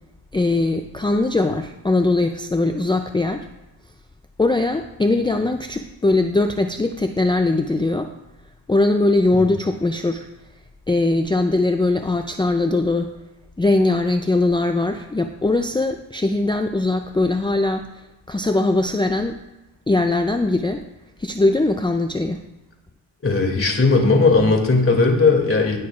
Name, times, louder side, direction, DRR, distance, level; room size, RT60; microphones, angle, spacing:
voice 1, 0.3-3.5 4.4-8.1 8.7-10.3 10.9-13.2 13.6-19.4 19.9-20.9 21.2-22.4, left 2 dB, 10° left, 6 dB, 0.5 m, -20 dB
voice 2, 23.2-25.8, left 3 dB, 30° left, 1 dB, 2.7 m, -17 dB
16.5 x 6.6 x 2.5 m, 1.0 s
cardioid pair, 60°, 43 cm